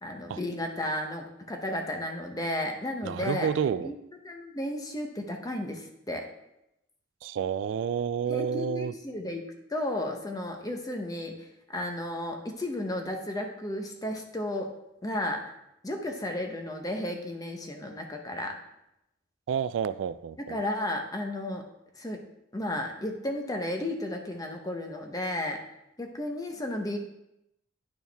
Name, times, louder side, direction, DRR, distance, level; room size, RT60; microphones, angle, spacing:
voice 1, 0.0-3.5 3.8-3.9 4.2-6.2 8.3-14.7 15.0-15.4 15.8-18.5 20.4-21.6 22.0-22.2 22.5-25.6 26.0-27.0, left 1 dB, 20° left, 3 dB, 0.9 m, -33 dB
voice 2, 3.0-3.9 7.2-8.9 19.5-20.6, right 7 dB, 85° right, 15 dB, 0.3 m, -29 dB
10.5 x 4.4 x 3.4 m, 0.85 s
head